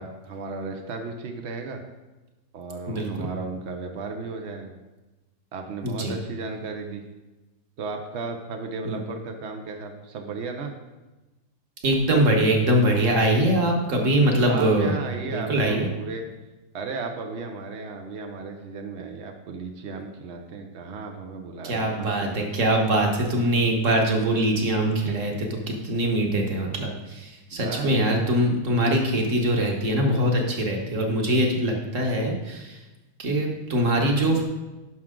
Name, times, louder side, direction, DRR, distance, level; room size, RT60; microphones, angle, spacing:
voice 1, 0.0-1.8 2.5-4.7 5.5-7.0 7.8-10.7 14.4-16.2 16.7-22.6 25.1-25.2 27.5-27.9, right 4 dB, 70° right, 4 dB, 0.6 m, -35 dB
voice 2, 2.9-3.3 5.8-6.1 8.8-9.0 11.8-14.9 15.3-15.9 21.6-32.8 33.2-34.4, right 1 dB, 45° right, 2 dB, 1.4 m, -23 dB
10.5 x 6.0 x 3.7 m, 1.1 s
omnidirectional pair, 2.2 m